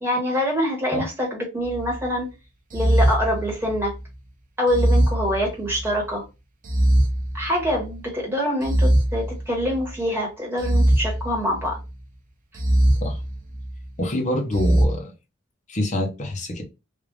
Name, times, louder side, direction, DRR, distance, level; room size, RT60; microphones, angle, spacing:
voice 1, 0.0-2.3 2.7-3.9 4.6-6.2 7.3-11.8, equal, 10° right, -1 dB, 1.4 m, -25 dB
sound 1, 1.6-2.0 2.7-4.0 4.7-6.0 6.6-7.9 8.6-9.9 10.6-11.9 12.6-13.8 14.5-14.8, right 1 dB, 40° right, 0.7 m, -22 dB
voice 2, 14.0-15.1 15.7-16.6, left 1 dB, 35° left, 0 dB, 0.9 m, -26 dB
3.3 x 2.5 x 3.3 m, 0.27 s
head